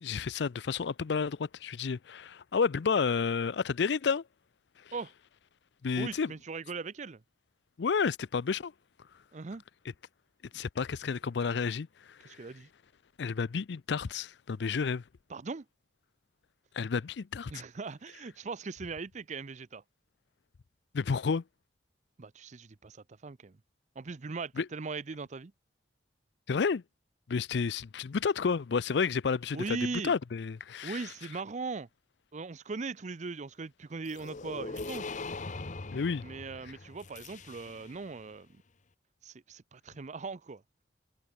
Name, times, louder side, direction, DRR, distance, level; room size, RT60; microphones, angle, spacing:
voice 1, 0.0-4.2 5.8-6.3 7.8-8.7 10.5-12.2 13.2-15.0 16.7-17.5 20.9-21.4 24.6-24.7 26.5-26.8 27.3-29.8 30.0-31.0 35.9-36.2, left 5 dB, 65° left, 0.5 m, -30 dB
voice 2, 6.0-7.2 9.3-9.6 12.2-12.7 15.3-15.7 17.5-19.8 22.2-23.6 24.0-25.5 27.5-27.6 29.5-30.1 30.8-31.9 32.3-35.1 36.2-38.6 39.2-40.6, right 4 dB, 40° right, 0.6 m, -39 dB
sound 1, 34.1-38.1, left 3 dB, 45° left, 1.0 m, -41 dB
head